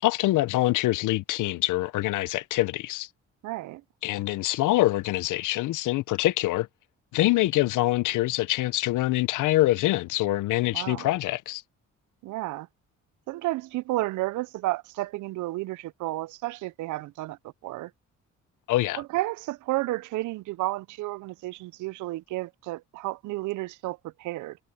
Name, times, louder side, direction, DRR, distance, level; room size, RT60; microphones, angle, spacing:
voice 1, 0.0-3.1 4.0-6.7 7.1-11.6 18.7-19.0, left 17 dB, 85° left, 0.7 m, -25 dB
voice 2, 3.4-3.8 10.7-11.1 12.2-12.7 13.3-17.9 19.0-24.6, right 18 dB, 75° right, 0.5 m, -32 dB
cardioid pair, 90°, 30 cm